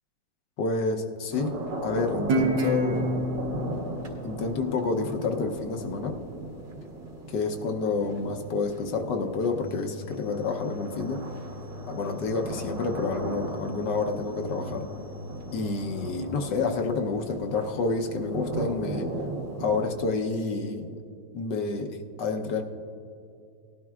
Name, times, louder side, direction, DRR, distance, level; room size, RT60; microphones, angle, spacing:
voice 1, 0.6-1.6 1.8-3.2 4.2-6.2 7.3-11.2 11.9-14.9 15.5-19.1 19.6-21.0 21.3-22.6, left 4 dB, 70° left, 4 dB, 1.3 m, -29 dB
sound 1, 1.3-19.9, right 2 dB, 70° right, 2.7 m, -37 dB
Guitar, 2.3-5.5, right 1 dB, 85° right, 1.7 m, -29 dB
sound 2, 9.6-15.6, left 2 dB, 15° right, 1.0 m, -43 dB
19.0 x 12.0 x 2.4 m, 2.5 s
omnidirectional pair, 2.1 m